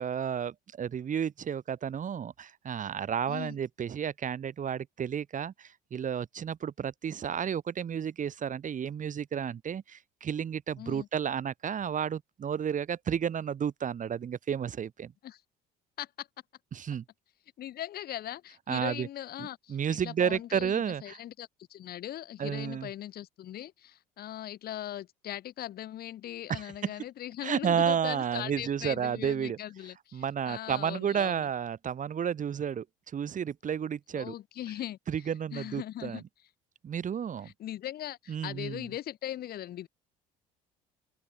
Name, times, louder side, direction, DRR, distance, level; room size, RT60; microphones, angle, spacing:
voice 1, 0.0-15.1 16.7-17.0 18.7-19.1 19.4-21.2 22.4-22.9 26.5-26.9 27.4-29.6 30.1-32.8 33.1-34.3 35.1-36.2 36.8-37.5 38.3-38.9, right 8 dB, 45° right, 4.7 m, -32 dB
voice 2, 3.3-3.6 10.8-11.1 15.2-15.4 16.0-16.3 17.6-31.5 34.1-36.2 37.4-39.9, left 12 dB, 60° left, 4.4 m, -40 dB
hypercardioid pair, 65°, 18 cm